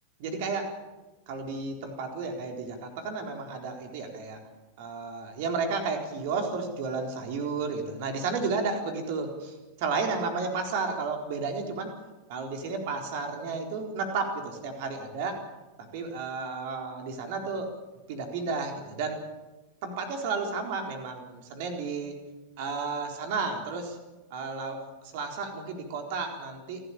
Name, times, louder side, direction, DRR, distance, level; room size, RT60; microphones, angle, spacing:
voice 1, 0.2-0.7 1.3-4.4 4.8-11.9 12.3-15.4 15.8-17.7 18.1-19.2 19.8-22.2 22.6-24.0 24.3-26.8, right 4 dB, 50° right, 3 dB, 4.1 m, -32 dB
28.0 x 13.0 x 8.8 m, 1.1 s
figure-of-eight pair, 90°, 0 cm